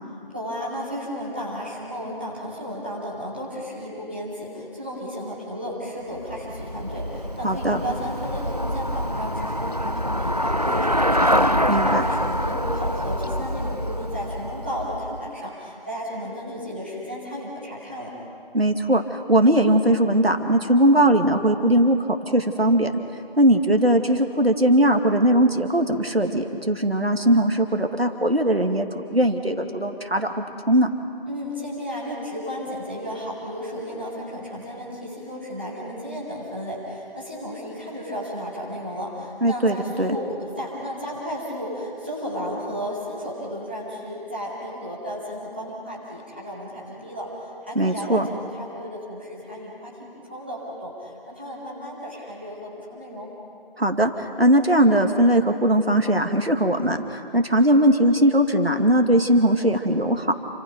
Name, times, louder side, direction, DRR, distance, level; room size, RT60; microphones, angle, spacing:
voice 1, 0.3-18.1 31.3-53.3, equal, 10° right, -9 dB, 2.7 m, -33 dB
Traffic noise roadway noise / Bicycle, 6.2-15.3, equal, 45° right, 0.6 m, -25 dB
voice 2, 7.4-7.8 11.7-12.0 18.5-22.0 22.3-22.9 23.4-30.9 39.4-40.2 47.8-48.3 53.8-54.1 54.4-60.3, right 1 dB, 85° right, 5 dB, 2.4 m, -19 dB
29.0 x 26.5 x 5.4 m, 2.5 s
figure-of-eight pair, 175°, 29 cm